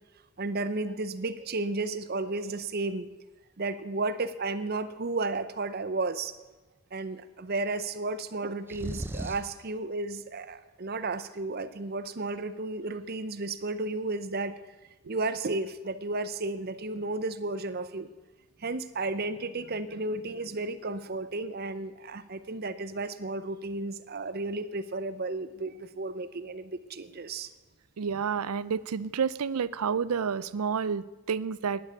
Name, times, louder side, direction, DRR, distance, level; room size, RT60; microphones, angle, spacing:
voice 1, 0.4-3.1 3.6-6.4 6.9-14.7 15.1-18.1 18.6-27.5, right 3 dB, 45° right, 12 dB, 0.7 m, -33 dB
sound 1, 8.7-9.6, right 1 dB, 10° right, 0.7 m, -36 dB
voice 2, 28.0-31.8, right 6 dB, 85° right, 18 dB, 0.5 m, -30 dB
9.9 x 8.8 x 8.4 m, 1.1 s
head